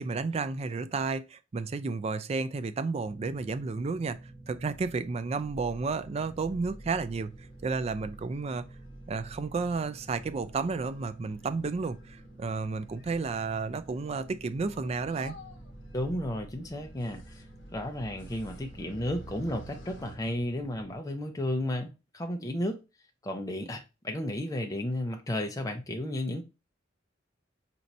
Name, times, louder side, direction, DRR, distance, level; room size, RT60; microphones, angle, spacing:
voice 1, 0.0-4.2 4.5-7.3 7.6-8.6 9.1-15.3, right 4 dB, 35° right, 0.3 m, -32 dB
sound 1, 3.0-21.0, right 1 dB, ahead, 1.3 m, -49 dB
sound 2, 5.7-20.2, equal, 65° left, 0.9 m, -53 dB
voice 2, 15.9-17.4 17.7-22.8 23.2-26.4, left 1 dB, 20° left, 0.5 m, -33 dB
4.4 x 2.6 x 4.1 m
head